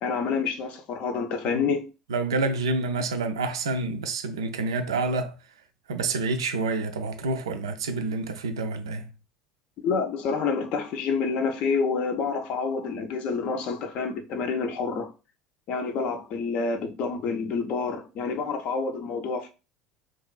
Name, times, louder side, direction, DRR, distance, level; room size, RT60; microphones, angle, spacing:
voice 1, 0.0-1.9 9.8-15.1 15.7-19.5, left 5 dB, 50° left, 0.5 m, -28 dB
voice 2, 2.1-5.3 5.9-9.1, right 3 dB, 70° right, 0.3 m, -28 dB
2.8 x 2.4 x 2.3 m
figure-of-eight pair, 65°, 3 cm